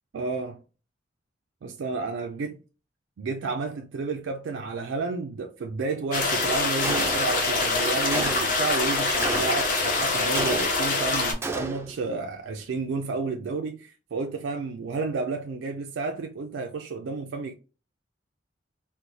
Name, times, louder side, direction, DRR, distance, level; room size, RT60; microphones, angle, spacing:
voice 1, 0.1-0.6 1.6-2.6 3.2-17.5, right 4 dB, 85° right, 0.4 m, -31 dB
sound 1, 6.1-11.3, left 3 dB, 45° left, 0.9 m, -25 dB
Gunshot gunfire, 6.8-7.5 8.1-8.7 9.2-9.8 10.3-11.0 11.4-12.0, right 3 dB, 15° right, 0.3 m, -32 dB
3.9 x 2.0 x 3.0 m
head